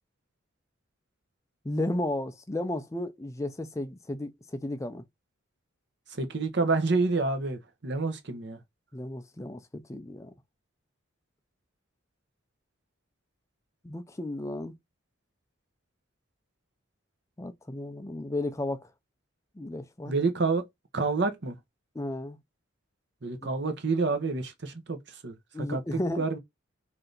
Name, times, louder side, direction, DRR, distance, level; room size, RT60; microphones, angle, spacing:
voice 1, 1.6-5.0 8.9-10.3 13.8-14.7 17.4-18.9 19.6-20.1 21.9-22.4 23.4-23.5 25.5-26.3, left 1 dB, 15° left, 0.4 m, -34 dB
voice 2, 6.2-8.6 20.0-20.6 20.9-21.6 23.2-25.3 25.7-26.4, right 3 dB, 55° right, 0.9 m, -28 dB
3.3 x 2.8 x 3.9 m
head